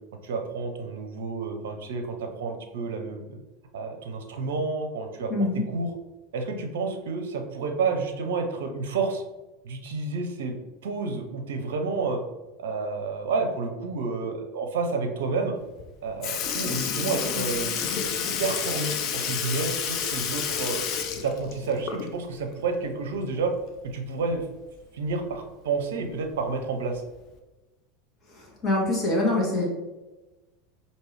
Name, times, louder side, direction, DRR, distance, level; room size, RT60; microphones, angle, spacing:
voice 1, 0.2-3.4 3.7-5.9 6.3-9.2 9.6-10.5 10.8-12.2 12.6-15.5 16.0-18.1 18.4-20.9 21.2-23.5 23.8-24.4 24.9-27.0, right 4 dB, 70° right, 5 dB, 0.5 m, -30 dB
voice 2, 5.3-5.6 28.6-29.6, left 2 dB, 30° left, -3 dB, 1.4 m, -24 dB
Sink (filling or washing) / Liquid, 15.8-15.9 16.2-22.3 22.7-22.8 24.3-24.4 25.3-25.4 26.3-26.5 27.3-27.4, left 7 dB, 50° left, 0.6 m, -30 dB
4.5 x 2.7 x 3.1 m, 1.1 s
hypercardioid pair, 85°, 0 cm